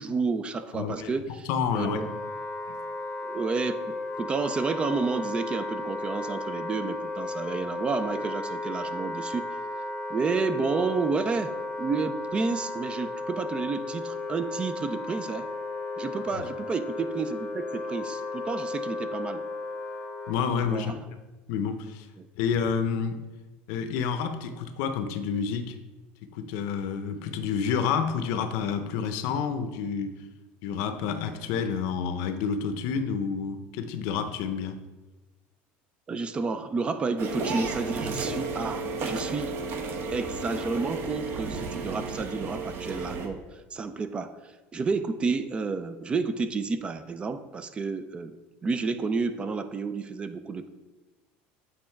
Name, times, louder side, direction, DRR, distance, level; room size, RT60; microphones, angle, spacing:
voice 1, 0.0-1.5 1.7-2.1 3.2-9.5 10.1-11.5 11.8-15.5 16.0-19.4 20.6-20.9 22.2-22.3 36.1-39.5 40.1-43.4 43.7-48.4 48.6-50.7, right 4 dB, 20° right, 10 dB, 0.4 m, -30 dB
voice 2, 0.7-1.2 1.5-2.1 16.3-16.4 20.3-20.9 21.5-22.1 22.4-23.2 23.7-25.7 26.3-30.2 30.6-34.8, left 6 dB, 70° left, 9 dB, 0.7 m, -29 dB
Wind instrument woodwind instrument, 1.7-20.4, left 2 dB, 20° left, 0.7 m, -34 dB
sound 1, 37.2-43.3, right 3 dB, 45° right, 0.9 m, -33 dB
8.5 x 3.8 x 4.5 m, 1.2 s
cardioid pair, 145°, 5 cm